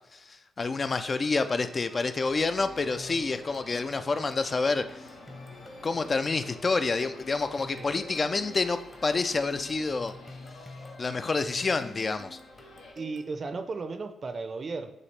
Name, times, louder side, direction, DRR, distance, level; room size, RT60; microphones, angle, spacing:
voice 1, 0.1-5.0 5.8-10.1 11.0-12.4, left 3 dB, 40° left, 10 dB, 0.3 m, -28 dB
sound 1, 1.0-13.3, left 2 dB, 20° left, 0.8 m, -49 dB
sound 2, 2.2-12.9, left 2 dB, 85° left, 0.9 m, -50 dB
voice 2, 13.0-14.9, right 4 dB, 45° right, 8 dB, 0.5 m, -35 dB
6.3 x 2.4 x 3.3 m, 0.88 s
supercardioid pair, 60°, 0 cm